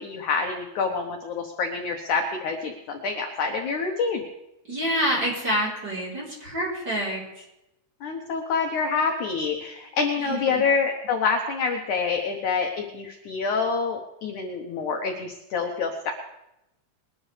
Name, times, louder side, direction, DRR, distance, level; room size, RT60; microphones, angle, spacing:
voice 1, 0.0-4.2 8.0-16.1, left 5 dB, 65° left, 2 dB, 2.1 m, -27 dB
voice 2, 4.7-7.2 10.2-10.6, equal, 25° right, -5 dB, 4.3 m, -27 dB
22.0 x 12.0 x 3.3 m, 0.89 s
omnidirectional pair, 4.8 m